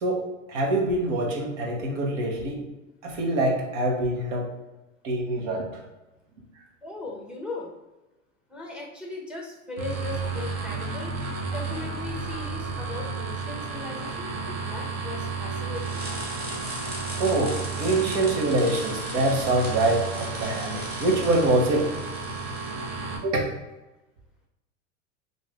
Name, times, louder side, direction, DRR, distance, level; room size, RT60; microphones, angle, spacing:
voice 1, 0.5-2.6 3.0-4.5 5.0-5.7 14.6-14.7 17.2-21.9 23.2-23.5, right 2 dB, 65° right, 0 dB, 1.1 m, -25 dB
voice 2, 6.8-7.7 8.5-14.3 14.7-16.0, left 3 dB, ahead, -2 dB, 0.7 m, -38 dB
sound 1, 9.8-23.2, right 4 dB, 40° right, 0.8 m, -32 dB
sound 2, 15.7-23.0, equal, 25° right, 1.2 m, -39 dB
2.6 x 2.5 x 3.3 m, 1.0 s
hypercardioid pair, 100°, 39 cm